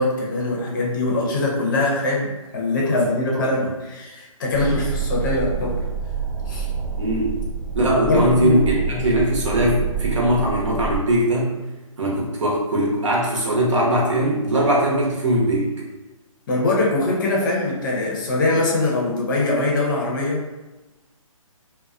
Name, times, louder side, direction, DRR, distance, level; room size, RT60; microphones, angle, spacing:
voice 1, 0.0-5.8 6.5-6.7 8.0-8.7 16.5-20.5, left 2 dB, 35° left, -3 dB, 0.6 m, -22 dB
sound 1, 4.5-11.0, right 5 dB, 25° right, 0.6 m, -27 dB
voice 2, 7.0-7.4 7.7-11.5 12.0-15.7, right 1 dB, 60° right, -3 dB, 0.9 m, -20 dB
2.4 x 2.2 x 2.4 m, 1.1 s
figure-of-eight pair, 140°, 18 cm